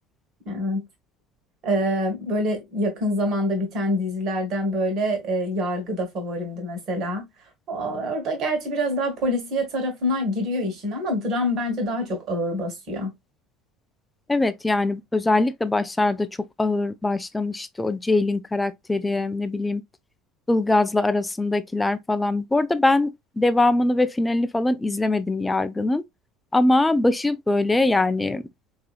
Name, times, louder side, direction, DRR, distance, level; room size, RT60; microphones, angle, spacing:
voice 1, 0.4-0.9 1.6-7.3 7.7-13.1, equal, 50° right, 1.6 m, -26 dB
voice 2, 14.3-16.3 16.6-19.8 20.5-23.1 23.4-26.0 26.5-28.4, left 2 dB, 10° left, 0.5 m, -22 dB
4.7 x 2.9 x 2.4 m
figure-of-eight pair, 65°, 0 cm